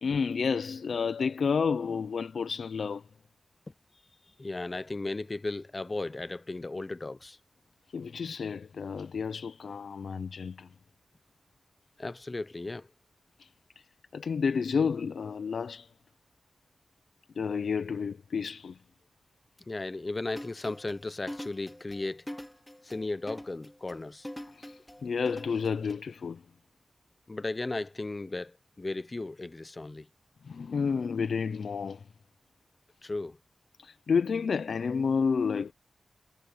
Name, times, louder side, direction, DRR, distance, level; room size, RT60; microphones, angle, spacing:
voice 1, 0.0-3.0 7.9-10.7 13.4-13.5 14.1-15.9 17.4-18.8 24.5-26.4 30.4-32.0 33.8-35.7, left 5 dB, 65° left, 0.5 m, -30 dB
voice 2, 4.4-7.4 12.0-12.9 19.7-22.2 22.8-24.3 27.3-30.1 33.0-33.4, left 2 dB, 25° left, 0.6 m, -35 dB
sound 1, 20.3-25.9, left 1 dB, 5° left, 0.9 m, -44 dB
wide cardioid pair, 170°, 0 cm